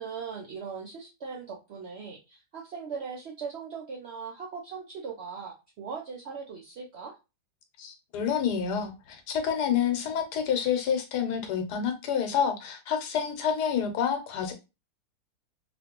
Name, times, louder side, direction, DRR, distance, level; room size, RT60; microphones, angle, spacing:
voice 1, 0.0-7.2, right 6 dB, 65° right, 0.6 m, -39 dB
voice 2, 7.8-14.5, left 7 dB, 85° left, 1.3 m, -28 dB
3.0 x 2.5 x 2.9 m
omnidirectional pair, 1.7 m